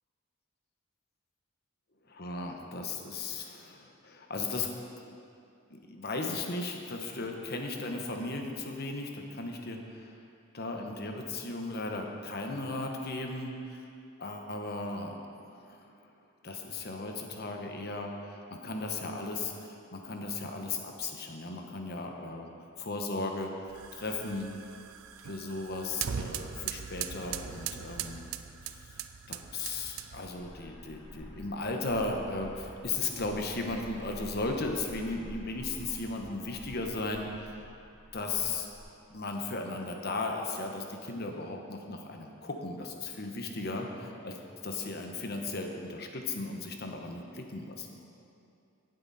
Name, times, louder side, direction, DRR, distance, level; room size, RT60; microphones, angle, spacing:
voice 1, 2.1-4.7 5.7-10.1 10.5-13.9 14.2-15.2 15.5-15.9 16.4-22.5 22.8-24.5 25.2-28.2 28.6-28.9 29.3-37.5 38.1-38.7 39.1-43.9 44.2-44.3 44.6-48.0, left 3 dB, 45° left, 2 dB, 1.1 m, -36 dB
sound 1, 23.7-30.4, right 8 dB, 75° right, 0.5 m, -40 dB
sound 2, 30.3-38.8, equal, 80° left, 2.6 m, -48 dB
17.0 x 7.8 x 4.2 m, 2.6 s
head